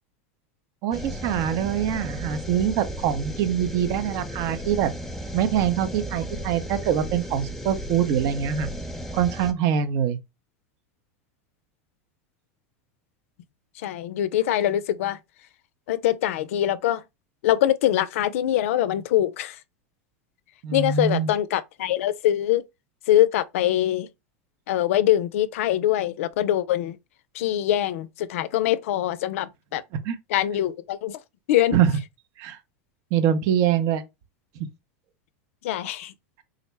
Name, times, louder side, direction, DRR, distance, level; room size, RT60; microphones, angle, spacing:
voice 1, 0.8-4.9 5.3-8.7 9.1-10.2 20.6-21.3 30.1-30.2 31.7-31.9 32.4-32.6 33.1-34.0, right 9 dB, 55° right, 0.6 m, -24 dB
sound 1, 0.9-9.5, equal, 5° left, 0.6 m, -34 dB
voice 2, 13.8-15.2 15.9-17.0 17.4-19.6 20.7-22.6 23.1-24.1 24.7-27.0 27.3-29.8 30.3-31.2 31.5-31.8 35.6-36.1, left 12 dB, 75° left, 0.4 m, -23 dB
3.7 x 2.1 x 3.1 m
hypercardioid pair, 105°, 7 cm